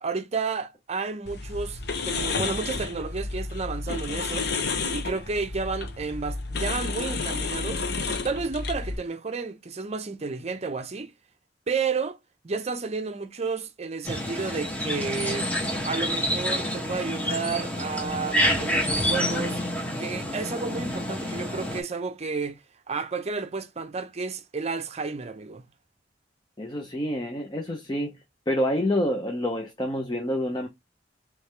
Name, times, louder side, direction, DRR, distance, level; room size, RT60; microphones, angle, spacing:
voice 1, 0.0-1.8 2.0-4.5 4.9-7.8 8.2-11.1 11.7-12.2 12.4-15.5 15.8-19.6 20.0-22.6 22.9-25.7, right 4 dB, 35° right, 0.6 m, -31 dB
sound 1, 1.2-9.0, left 4 dB, 65° left, 0.7 m, -31 dB
sound 2, 14.0-21.8, equal, 10° left, 1.0 m, -28 dB
voice 2, 26.6-28.1 28.5-30.7, left 1 dB, 25° left, 0.6 m, -27 dB
3.3 x 3.2 x 3.2 m
head